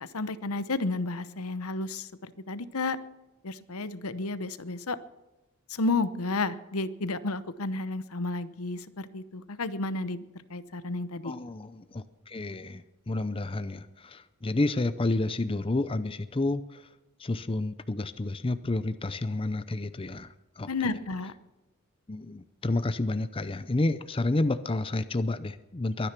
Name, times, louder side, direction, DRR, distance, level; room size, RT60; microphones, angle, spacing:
voice 1, 0.0-3.0 3.4-5.0 5.7-10.2 10.5-11.3 20.7-21.3, left 3 dB, 80° left, 14 dB, 1.0 m, -32 dB
voice 2, 11.2-16.9 17.2-20.7 22.1-26.1, left 2 dB, 25° left, 12 dB, 0.5 m, -30 dB
22.5 x 10.0 x 6.0 m, 1.0 s
head